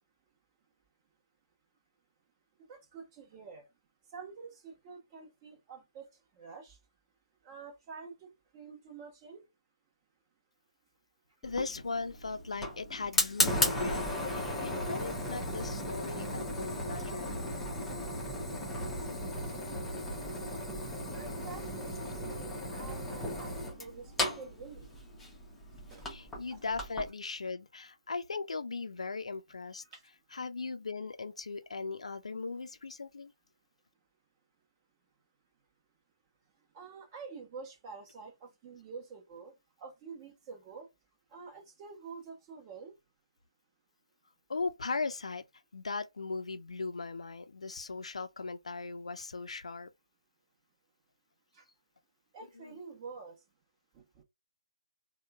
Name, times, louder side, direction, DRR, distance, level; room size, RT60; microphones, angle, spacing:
voice 1, 2.7-3.7 4.1-6.1 6.3-6.8 7.4-9.4 21.1-24.9 25.9-26.1 29.9-30.0 36.7-40.9 41.3-42.9 51.5-51.7 52.3-53.4 53.9-54.2, right 5 dB, 25° right, 1.1 m, -48 dB
voice 2, 11.4-14.0 14.3-17.4 26.1-29.8 30.3-33.3 44.5-45.4 45.7-49.9, left 4 dB, 70° left, 0.5 m, -38 dB
Fire, 11.4-27.1, left 1 dB, 5° left, 0.7 m, -35 dB
3.6 x 2.2 x 2.3 m
figure-of-eight pair, 140°, 4 cm